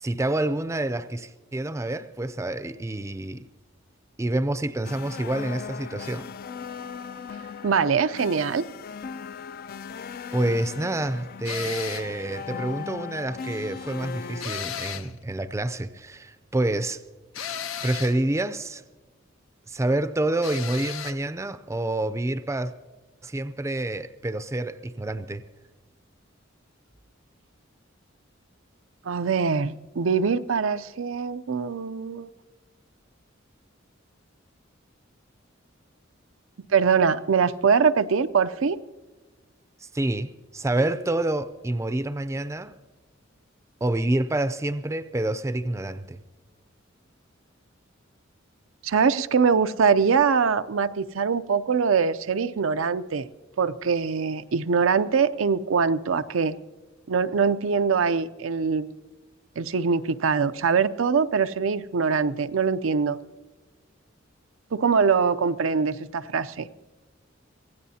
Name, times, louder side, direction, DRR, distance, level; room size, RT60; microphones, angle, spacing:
voice 1, 0.0-3.5 4.2-6.3 10.3-17.0 17.8-18.8 19.7-22.7 23.2-25.4 39.8-42.7 43.8-46.2, right 1 dB, 15° right, 0.5 m, -28 dB
sound 1, 4.8-14.5, left 6 dB, 50° left, 0.4 m, -38 dB
voice 2, 7.6-8.6 29.0-32.3 36.7-38.8 48.8-53.3 53.6-56.6 57.1-58.9 59.6-63.2 64.7-66.7, right 5 dB, 90° right, 0.5 m, -23 dB
sound 2, 11.4-12.2 14.4-15.2 17.3-18.2 20.4-21.2, left 8 dB, 90° left, 0.8 m, -34 dB
25.0 x 16.5 x 2.8 m
head